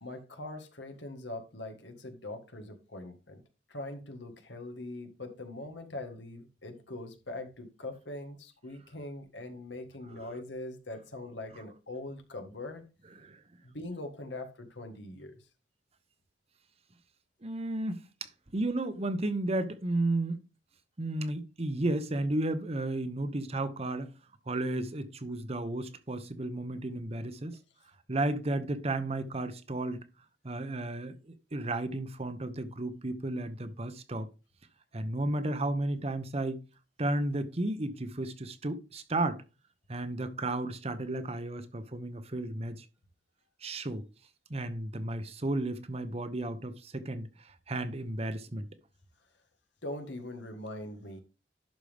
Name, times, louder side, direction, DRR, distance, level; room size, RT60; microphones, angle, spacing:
voice 1, 0.0-3.4 3.7-12.9 13.6-15.4 49.8-51.2, left 2 dB, 80° left, 1.7 m, -42 dB
voice 2, 17.4-18.0 18.5-20.4 21.0-24.1 24.5-27.6 28.1-30.1 30.4-34.3 34.9-36.6 37.0-39.4 39.9-42.8 43.6-44.0 44.5-48.7, right 2 dB, 35° right, 0.9 m, -33 dB
11.5 x 5.4 x 3.5 m
head